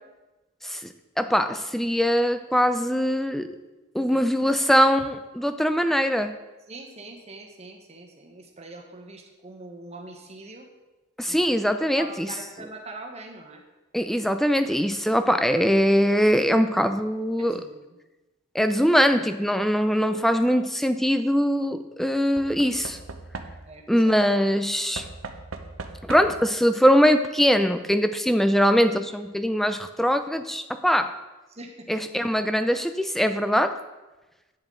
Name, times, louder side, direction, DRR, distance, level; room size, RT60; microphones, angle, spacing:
voice 1, 1.2-3.5 3.9-6.3 11.2-12.3 13.9-17.6 18.5-23.0 23.9-25.0 26.0-31.1 31.9-33.8, equal, ahead, 9 dB, 0.4 m, -22 dB
voice 2, 6.7-10.7 11.3-13.6 17.4-18.0 23.7-24.2 31.5-32.2, right 2 dB, 30° right, 2 dB, 1.2 m, -43 dB
Knock / Wood, 20.1-20.6 22.4-23.9 24.9-26.5 27.6-27.7 27.9-28.0, right 3 dB, 75° right, 0.7 m, -39 dB
10.0 x 7.3 x 3.8 m, 1.1 s
head